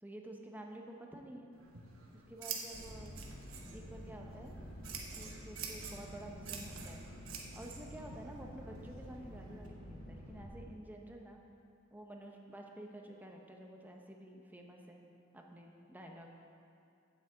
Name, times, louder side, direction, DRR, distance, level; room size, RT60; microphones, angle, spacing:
voice 1, 0.0-1.5 2.3-3.2 3.7-4.5 5.2-7.0 7.5-11.4 11.9-15.0 15.3-16.3, right 1 dB, 10° right, 1 dB, 0.9 m, -50 dB
Scissors, 1.5-9.7, right 6 dB, 70° right, 1.1 m, -49 dB
sound 1, 2.7-10.5, equal, 40° left, 2.2 m, -49 dB
8.4 x 6.1 x 7.9 m, 2.6 s
head